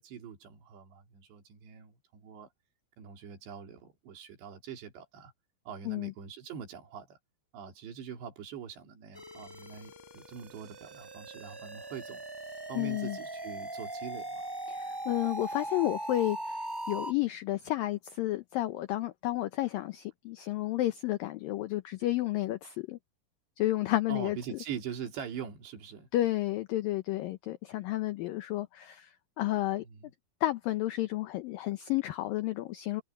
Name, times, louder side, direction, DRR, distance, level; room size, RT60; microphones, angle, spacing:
voice 1, 0.0-2.5 3.0-5.3 5.7-7.2 7.5-12.2 12.7-14.5 24.1-26.1 29.8-30.1, right 7 dB, 75° right, 5.5 m, -43 dB
sound 1, 9.1-17.1, right 1 dB, 5° right, 5.7 m, -40 dB
voice 2, 12.7-13.2 14.7-23.0 23.6-24.4 26.1-29.1 29.4-29.8 30.4-33.0, left 16 dB, 80° left, 2.0 m, -31 dB
omnidirectional pair, 5.1 m